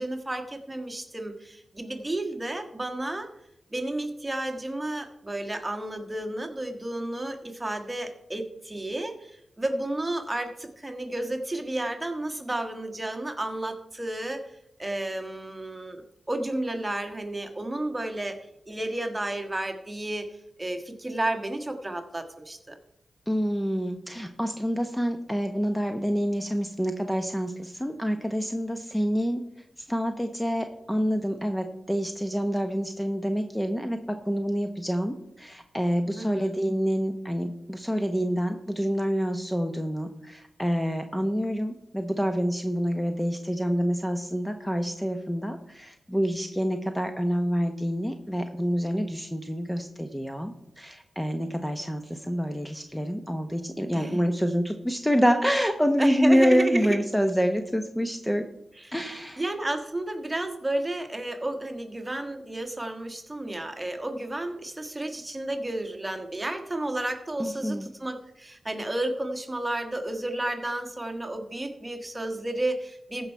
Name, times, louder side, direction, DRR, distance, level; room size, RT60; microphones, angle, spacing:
voice 1, 0.0-3.3 3.7-14.4 14.8-18.4 18.7-22.8 36.1-36.5 53.9-54.2 56.0-57.0 58.8-58.9 59.4-73.3, right 1 dB, 20° right, 6 dB, 1.5 m, -32 dB
voice 2, 23.3-29.4 29.8-58.5 58.9-59.4 67.4-67.9, equal, 5° left, 6 dB, 0.9 m, -27 dB
14.5 x 5.6 x 4.6 m, 0.81 s
cardioid pair, 50°, 0 cm